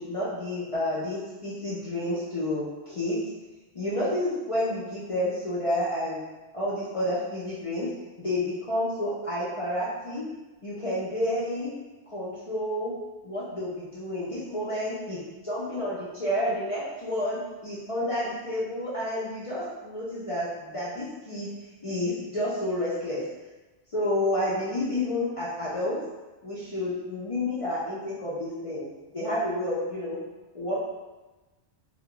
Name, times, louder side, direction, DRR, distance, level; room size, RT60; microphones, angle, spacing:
voice 1, 0.0-3.2 3.7-6.2 6.5-7.9 8.2-10.3 10.6-11.7 12.1-12.9 13.2-21.5 21.8-23.2 23.9-26.0 26.4-28.9 29.1-30.2 30.5-30.8, left 1 dB, 45° left, -8 dB, 0.4 m, -30 dB
2.3 x 2.1 x 3.6 m, 1.2 s
omnidirectional pair, 1.2 m